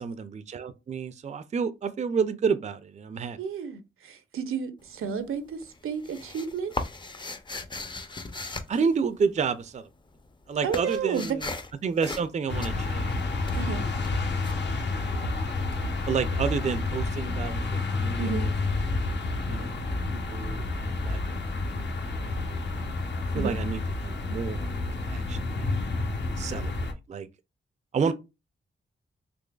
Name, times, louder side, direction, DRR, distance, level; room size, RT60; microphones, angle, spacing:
voice 1, 0.0-3.4 8.7-9.9 10.5-11.5 11.8-13.2 13.6-13.7 14.9-15.4 16.1-18.5 19.5-19.8 20.1-21.4 21.7-21.9 22.2-22.9 23.3-24.8 25.1-25.7 26.4-27.3 27.9-28.1, right 6 dB, 35° right, 0.4 m, -30 dB
voice 2, 3.4-6.7 10.6-11.3 13.5-13.9 18.2-18.4 23.3-23.5 28.0-28.1, right 6 dB, 85° right, 0.6 m, -32 dB
sound 1, 4.8-5.3 5.6-9.7 9.9-15.5, left 2 dB, 20° left, 0.5 m, -38 dB
sound 2, 12.5-26.9, left 3 dB, 55° left, 0.7 m, -29 dB
3.8 x 2.9 x 2.3 m
cardioid pair, 65°, 21 cm